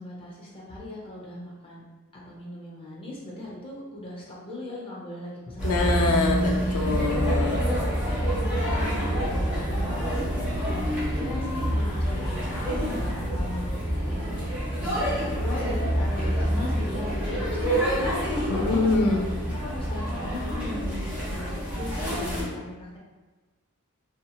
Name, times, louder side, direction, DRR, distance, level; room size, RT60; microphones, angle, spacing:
voice 1, 0.0-1.8 2.1-6.1 8.1-9.2 9.5-10.1 10.6-14.3 14.8-19.1 19.5-23.0, left 1 dB, 25° left, -5 dB, 0.7 m, -39 dB
voice 2, 5.6-7.6 18.5-19.2, left 3 dB, 75° left, 1 dB, 0.5 m, -24 dB
sound 1, 5.6-22.4, equal, 5° right, 1.1 m, -27 dB
2.7 x 2.7 x 2.3 m, 1.2 s
head